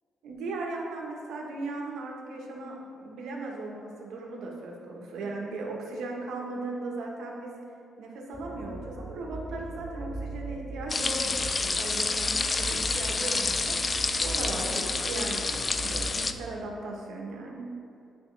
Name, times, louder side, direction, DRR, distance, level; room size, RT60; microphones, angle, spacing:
voice 1, 0.2-7.5 8.0-17.7, right 2 dB, 80° right, -1 dB, 1.2 m, -37 dB
sound 1, 8.3-16.3, right 2 dB, 20° right, 0.7 m, -39 dB
sound 2, 10.9-16.3, left 3 dB, 30° left, 0.3 m, -29 dB
8.4 x 5.5 x 3.3 m, 2.5 s
cardioid pair, 90°, 0 cm